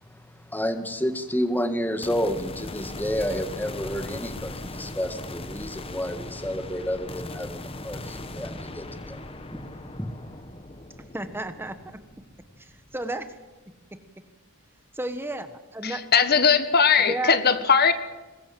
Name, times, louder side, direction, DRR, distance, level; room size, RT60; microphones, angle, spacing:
voice 1, 0.1-9.6 10.0-10.3, equal, 10° left, 1.8 m, -30 dB
sound 1, 2.0-13.4, left 2 dB, 25° left, 1.3 m, -39 dB
voice 2, 11.1-12.0 12.6-13.4 14.9-16.0 17.0-17.4, right 1 dB, 10° right, 1.3 m, -32 dB
voice 3, 15.8-17.9, left 6 dB, 50° left, 1.5 m, -19 dB
23.5 x 20.5 x 7.7 m
head